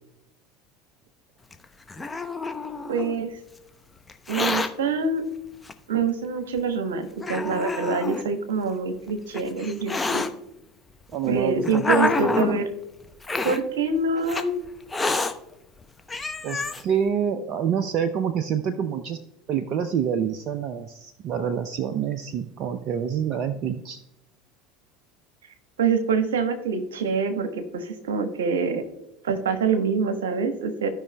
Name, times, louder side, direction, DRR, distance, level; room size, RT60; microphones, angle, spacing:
Hiss, 1.5-3.2 4.1-4.7 5.7-5.8 6.6-6.7 7.2-8.2 9.1-10.3 11.1-12.6 13.2-13.6 14.3-14.4 14.9-15.3 15.8-15.9 16.1-16.8, left 3 dB, 15° left, 0.7 m, -27 dB
voice 1, 2.9-3.4 4.3-5.2 5.9-10.3 11.2-12.7 13.4-14.6 25.8-28.8 29.2-30.9, right 4 dB, 75° right, 8 dB, 1.0 m, -25 dB
voice 2, 11.1-12.4 16.4-19.2 19.5-24.0, right 8 dB, 45° right, 10 dB, 0.5 m, -27 dB
15.5 x 5.4 x 2.2 m, 0.88 s
figure-of-eight pair, 70°, 0 cm